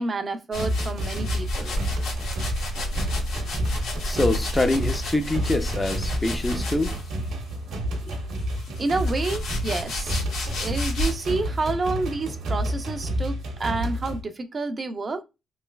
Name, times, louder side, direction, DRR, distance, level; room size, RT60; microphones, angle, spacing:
voice 1, 0.0-1.7 8.1-8.2 8.4-8.5 8.8-10.2 10.6-15.2, right 3 dB, 35° right, 0.4 m, -29 dB
sound 1, 0.5-7.3 8.1-11.3, left 1 dB, 90° left, 1.1 m, -32 dB
sound 2, 0.5-14.2, equal, 85° right, 0.9 m, -30 dB
voice 2, 4.0-7.0, left 2 dB, 20° left, 0.5 m, -25 dB
3.1 x 3.0 x 2.2 m
cardioid pair, 90°, 0 cm